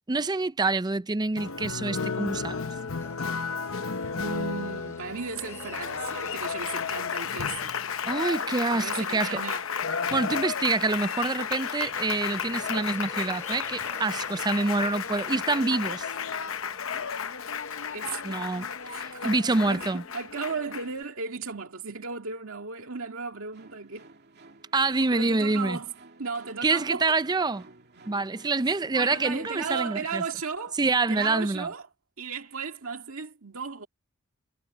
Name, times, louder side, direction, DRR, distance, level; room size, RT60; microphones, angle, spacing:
voice 1, 0.1-2.7 8.1-9.4 10.1-16.1 18.2-18.7 19.0-20.0 24.7-25.8 26.6-27.7 28.1-30.2 30.8-31.7, right 3 dB, 20° right, 0.5 m, -26 dB
Applause, 1.4-21.0, left 6 dB, 70° left, 0.9 m, -33 dB
sound 1, 3.0-8.2 11.8-19.3, left 2 dB, 15° left, 6.3 m, -52 dB
voice 2, 4.1-7.8 8.7-9.7 17.9-18.4 18.9-19.4 19.7-24.1 25.1-25.9 26.2-27.2 28.7-30.8 31.1-31.8 32.2-33.9, right 5 dB, 75° right, 2.1 m, -35 dB
sound 2, 23.5-29.9, right 3 dB, 50° right, 2.6 m, -53 dB
head